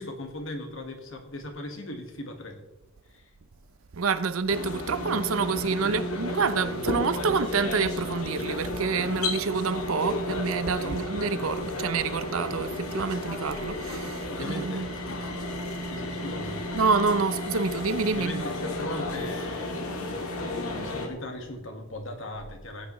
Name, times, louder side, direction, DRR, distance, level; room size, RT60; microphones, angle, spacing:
voice 1, 0.0-2.6 3.1-3.3 5.8-6.0 10.9-11.1 14.3-15.2 15.9-16.6 18.1-20.3 20.7-22.9, left 1 dB, 65° left, 1.7 m, -38 dB
voice 2, 4.0-14.9 16.7-18.4, right 5 dB, 75° right, 0.6 m, -27 dB
sound 1, 4.5-21.1, left 1 dB, 90° left, 1.7 m, -33 dB
16.5 x 8.6 x 3.1 m
head